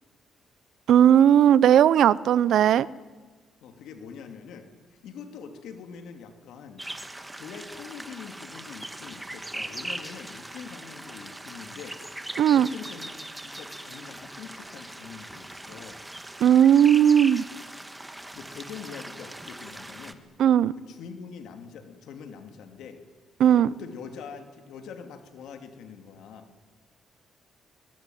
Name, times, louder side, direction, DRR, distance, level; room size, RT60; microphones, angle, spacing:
voice 1, 0.9-2.9 12.4-12.7 16.4-17.4 20.4-20.7 23.4-23.7, right 9 dB, 70° right, 19 dB, 0.7 m, -17 dB
voice 2, 3.6-6.9 7.4-12.0 12.5-16.0 18.3-20.3 20.7-23.0 23.5-26.5, left 6 dB, 85° left, 6 dB, 2.9 m, -44 dB
sound 1, 6.8-20.1, right 1 dB, 10° right, 1.5 m, -40 dB
24.5 x 20.0 x 9.3 m, 1.3 s
cardioid pair, 125°, 0 cm